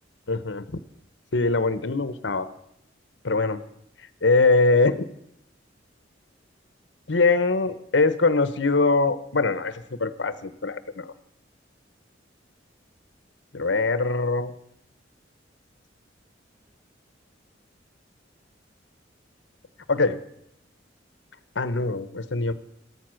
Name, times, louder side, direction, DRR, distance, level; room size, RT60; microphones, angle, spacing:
voice 1, 0.3-0.8 1.3-2.5 3.2-3.6 4.2-5.1 7.1-11.1 13.5-14.5 19.9-20.2 21.5-22.5, left 3 dB, 70° left, 13 dB, 1.1 m, -22 dB
14.5 x 13.5 x 6.4 m, 0.74 s
head